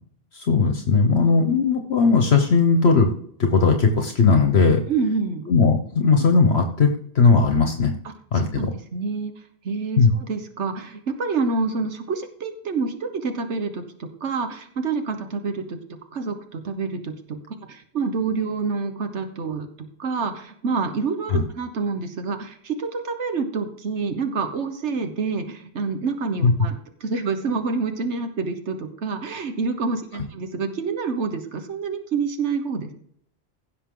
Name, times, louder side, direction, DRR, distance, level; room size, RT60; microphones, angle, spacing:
voice 1, 0.3-3.1 3.4-4.8 5.5-6.9 7.1-7.9 8.3-8.7 10.0-10.1 21.3-21.4 26.4-26.5, left 4 dB, 65° left, 5 dB, 1.3 m, -18 dB
voice 2, 1.1-1.6 4.9-5.5 8.0-8.1 8.5-9.3 9.6-15.8 16.1-32.9, right 4 dB, 85° right, 7 dB, 1.5 m, -27 dB
16.5 x 6.7 x 3.8 m, 0.66 s
omnidirectional pair, 1.2 m